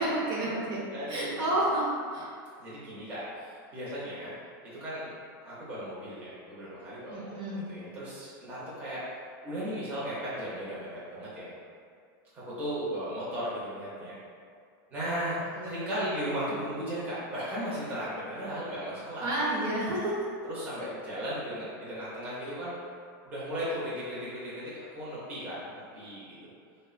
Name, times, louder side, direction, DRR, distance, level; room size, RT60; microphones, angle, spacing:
voice 1, 0.0-0.8 1.1-1.9 2.1-2.3 7.1-7.6 15.5-15.8 19.2-20.1, right 1 dB, 65° right, -6 dB, 0.9 m, -30 dB
voice 2, 0.9-1.5 2.6-4.3 4.6-5.1 5.4-7.3 7.7-9.0 9.4-11.5 12.3-14.2 14.9-15.4 15.6-19.3 20.5-22.7 23.3-26.5, equal, 15° right, -10 dB, 0.6 m, -36 dB
3.3 x 2.1 x 2.4 m, 2.2 s
supercardioid pair, 170°, 11 cm